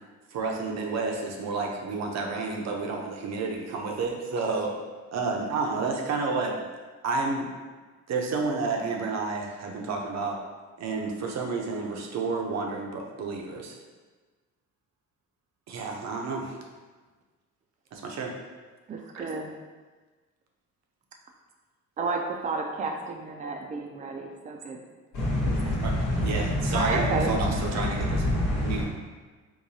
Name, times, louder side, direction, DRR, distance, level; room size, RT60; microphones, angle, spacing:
voice 1, 0.3-4.7 5.1-6.5 7.0-7.5 8.1-10.4 10.8-13.8 15.7-16.6 17.9-18.3 19.1-19.2 25.8-25.9 26.2-28.3 28.6-28.8, right 4 dB, 60° right, 1 dB, 0.7 m, -30 dB
voice 2, 18.9-19.5 22.0-24.8 25.5-25.8 26.7-27.3, right 3 dB, 25° right, 2 dB, 0.4 m, -32 dB
voice 3, 25.1-28.8, left 1 dB, 85° left, -11 dB, 1.0 m, -27 dB
4.7 x 2.2 x 2.7 m, 1.3 s
cardioid pair, 90°, 30 cm